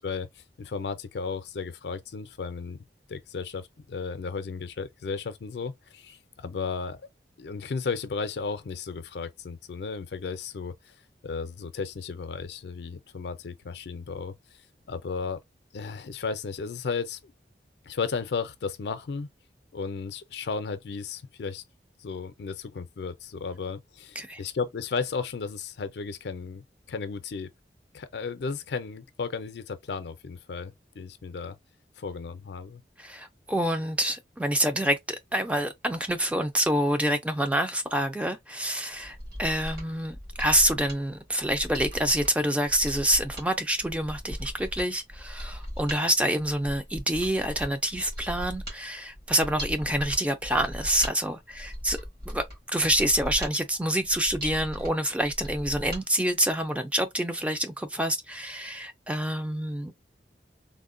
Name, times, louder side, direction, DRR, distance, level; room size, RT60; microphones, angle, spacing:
voice 1, 0.0-2.8 3.1-7.0 7.4-10.9 11.2-14.3 14.9-15.4 15.7-17.3 17.9-19.3 19.7-21.6 22.0-27.5 27.9-31.6 32.0-32.8, left 5 dB, 70° left, 0.4 m, -34 dB
voice 2, 33.0-52.0 52.3-59.9, right 1 dB, 5° right, 0.3 m, -27 dB
Mechanisms, 39.0-56.0 56.4-56.5, equal, 60° right, 1.9 m, -39 dB
3.5 x 2.1 x 2.4 m
head